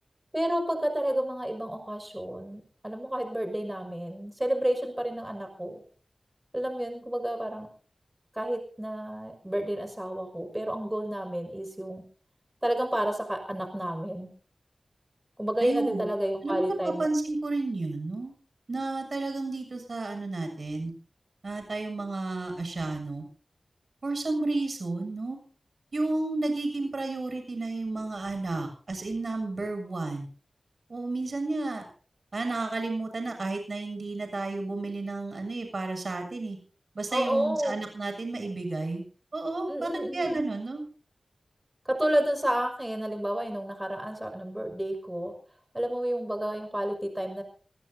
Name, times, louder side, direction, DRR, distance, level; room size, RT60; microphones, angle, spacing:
voice 1, 0.3-5.8 6.5-7.7 8.3-12.0 12.6-14.3 15.4-17.1 37.1-37.7 39.7-40.5 41.8-45.3 45.7-47.4, right 1 dB, 15° right, 5 dB, 6.1 m, -30 dB
voice 2, 15.6-16.0 16.4-18.3 18.7-20.9 21.4-23.2 24.0-25.4 25.9-30.3 30.9-31.9 32.3-36.6 37.0-39.0 39.3-40.8, right 2 dB, 60° right, 5 dB, 7.0 m, -32 dB
27.0 x 18.0 x 2.8 m, 0.42 s
cardioid pair, 50°, 0 cm